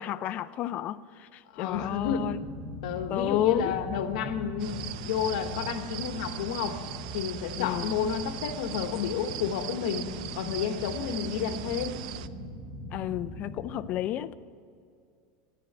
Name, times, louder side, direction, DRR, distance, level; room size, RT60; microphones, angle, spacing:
voice 1, 0.0-2.4 3.1-3.7 7.6-8.0 12.9-14.3, left 12 dB, 35° left, 0.4 m, -31 dB
voice 2, 1.5-2.3 2.8-6.8 7.1-10.0 10.3-12.0, left 8 dB, 70° left, 1.2 m, -31 dB
sound 1, 1.7-13.8, equal, 10° right, 4.3 m, -41 dB
sound 2, 4.6-12.3, right 14 dB, 65° right, 0.5 m, -40 dB
11.0 x 10.5 x 7.9 m
supercardioid pair, 160°, 4 cm